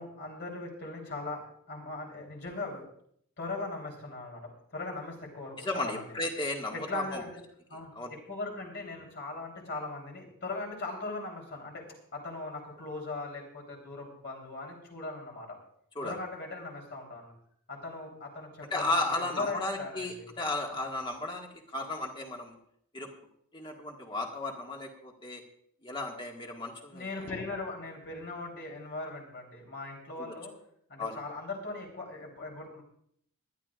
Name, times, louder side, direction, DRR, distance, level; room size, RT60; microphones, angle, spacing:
voice 1, 0.0-1.4 1.7-2.9 3.4-6.2 6.7-7.3 7.7-11.8 12.1-15.6 16.0-17.3 17.7-20.3 26.9-30.5 30.9-32.8, left 3 dB, 50° left, 0 dB, 3.8 m, -39 dB
voice 2, 5.6-7.2 8.0-8.2 16.0-16.2 18.7-22.6 22.9-23.1 23.5-25.4 25.8-27.1 30.1-30.4 31.0-31.2, left 2 dB, 20° left, 1 dB, 1.9 m, -34 dB
21.0 x 12.0 x 2.5 m, 0.68 s
head